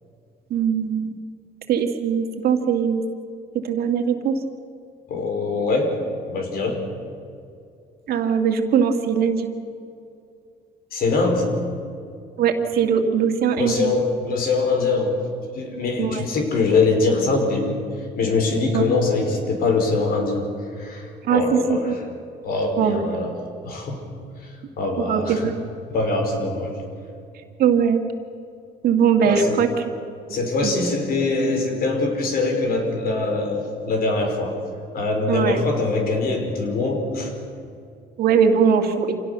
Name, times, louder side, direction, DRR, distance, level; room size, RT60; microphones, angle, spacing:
voice 1, 0.5-1.2 1.7-3.0 3.6-4.4 8.1-9.5 12.4-13.9 16.0-16.2 18.7-18.8 21.3-21.9 22.8-23.0 25.1-25.5 27.6-28.0 28.8-29.7 30.6-30.7 35.3-35.6 38.2-39.2, right 7 dB, 65° right, 5 dB, 2.2 m, -20 dB
voice 2, 5.1-6.0 6.2-6.8 10.9-11.5 13.6-15.1 15.5-17.8 18.1-22.0 22.4-23.3 23.6-24.0 24.4-25.5 25.9-26.7 29.2-29.6 30.3-34.5 34.9-37.3, left 3 dB, 60° left, 3 dB, 5.0 m, -23 dB
27.0 x 17.5 x 6.9 m, 2.5 s
cardioid pair, 110°, 17 cm